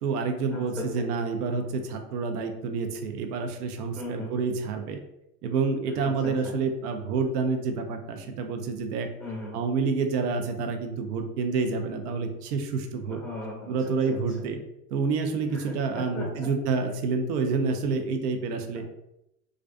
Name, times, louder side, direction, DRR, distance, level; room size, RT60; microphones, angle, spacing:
voice 1, 0.0-5.0 5.4-9.1 9.5-13.2 13.7-14.6 14.9-18.8, right 4 dB, 65° right, 5 dB, 0.6 m, -28 dB
voice 2, 0.5-1.0 3.9-4.3 6.0-6.3 9.2-9.6 13.1-13.7 14.1-14.2 15.5-16.5 18.7-18.8, left 1 dB, ahead, -6 dB, 0.9 m, -38 dB
2.4 x 2.2 x 2.4 m, 0.85 s
hypercardioid pair, 100°, 50 cm